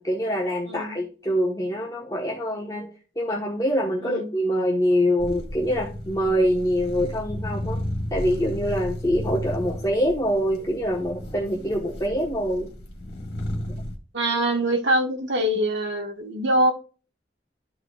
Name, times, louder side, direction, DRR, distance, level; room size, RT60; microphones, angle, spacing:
voice 1, 0.0-2.9 3.2-7.8 8.1-12.7, equal, 20° left, -3 dB, 1.1 m, -25 dB
voice 2, 0.7-1.0 4.0-4.3 14.1-16.7, right 1 dB, 80° right, 3 dB, 1.5 m, -24 dB
sound 1, 5.2-14.0, left 1 dB, 60° left, 1.8 m, -33 dB
12.5 x 4.8 x 2.4 m, 0.36 s
head